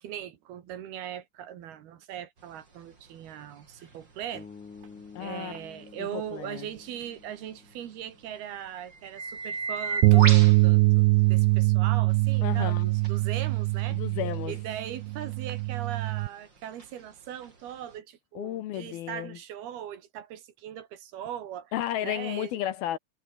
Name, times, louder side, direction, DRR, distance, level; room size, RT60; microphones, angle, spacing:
voice 1, 0.0-4.5 5.2-11.0 11.3-14.0 14.5-21.7 22.0-22.6, right 10 dB, 65° right, 3.5 m, -39 dB
sound 1, 2.4-11.6 12.1-18.0, right 3 dB, 25° right, 4.6 m, -39 dB
sound 2, 4.3-8.5, left 5 dB, 45° left, 5.7 m, -50 dB
voice 2, 5.1-5.5 6.0-6.7 12.4-12.9 13.9-14.6 18.4-19.4 21.7-23.0, left 12 dB, 70° left, 2.6 m, -33 dB
Bass guitar, 10.0-16.3, right 21 dB, 80° right, 2.5 m, -22 dB
omnidirectional pair, 5.0 m